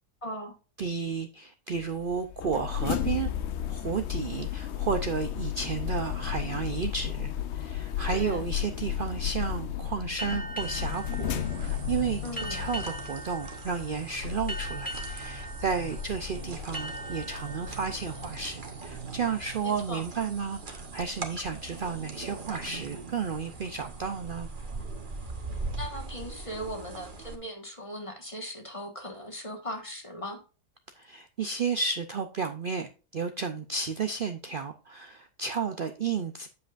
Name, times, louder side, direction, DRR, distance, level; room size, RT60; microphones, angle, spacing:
voice 1, 0.2-0.5 8.1-8.4 12.2-12.7 19.6-20.0 25.8-30.4, equal, 20° left, 3 dB, 1.4 m, -38 dB
voice 2, 0.8-3.3 3.7-12.2 12.5-24.5 31.0-36.5, right 5 dB, 70° right, 7 dB, 0.5 m, -32 dB
sound 1, 1.7-18.5, left 10 dB, 70° left, 0.6 m, -34 dB
sound 2, 10.2-19.5, right 1 dB, 5° left, 1.8 m, -41 dB
sound 3, 10.6-27.4, right 3 dB, 35° right, 1.2 m, -41 dB
8.2 x 7.6 x 2.5 m, 0.33 s
omnidirectional pair, 1.7 m